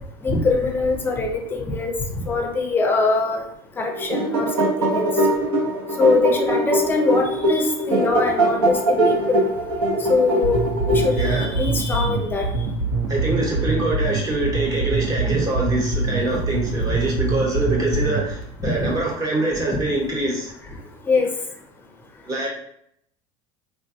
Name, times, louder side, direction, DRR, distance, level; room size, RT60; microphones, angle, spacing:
voice 1, 0.2-1.9 2.2-3.4 3.8-5.1 6.0-9.5 10.1-10.6 10.9-12.5 15.3-15.4 16.3-16.4 18.8-18.9 21.1-21.3, left 3 dB, 15° left, 3 dB, 0.5 m, -22 dB
sound 1, 3.9-11.5, right 1 dB, 85° right, 0.9 m, -22 dB
sound 2, 10.4-18.4, right 3 dB, 55° right, 0.6 m, -24 dB
voice 2, 11.2-11.5 13.1-20.5 22.2-22.5, right 2 dB, 30° right, -2 dB, 0.9 m, -24 dB
3.3 x 2.1 x 2.6 m, 0.70 s
supercardioid pair, 135°, 13 cm